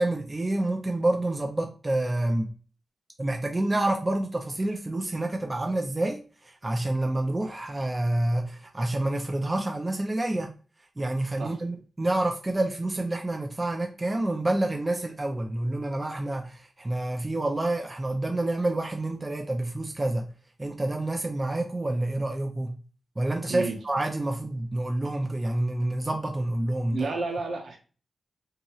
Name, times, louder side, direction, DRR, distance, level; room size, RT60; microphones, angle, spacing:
voice 1, 0.0-2.5 3.2-10.5 11.0-20.3 20.6-22.8 23.2-27.1, right 1 dB, 20° right, 0.3 m, -28 dB
voice 2, 23.4-23.8 26.9-27.8, right 3 dB, 65° right, 0.7 m, -31 dB
2.9 x 2.7 x 2.3 m
wide cardioid pair, 135°, 0 cm